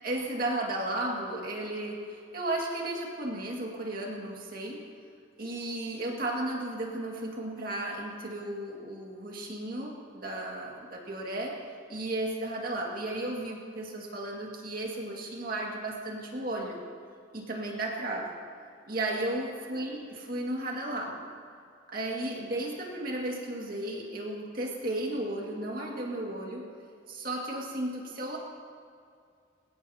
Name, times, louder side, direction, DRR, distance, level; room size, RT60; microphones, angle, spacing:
voice 1, 0.0-4.8 5.4-11.6 11.9-16.8 17.3-18.4 18.9-21.2 21.9-26.7 27.1-28.4, right 1 dB, 45° right, -2 dB, 2.2 m, -34 dB
20.5 x 18.0 x 2.9 m, 2.3 s
head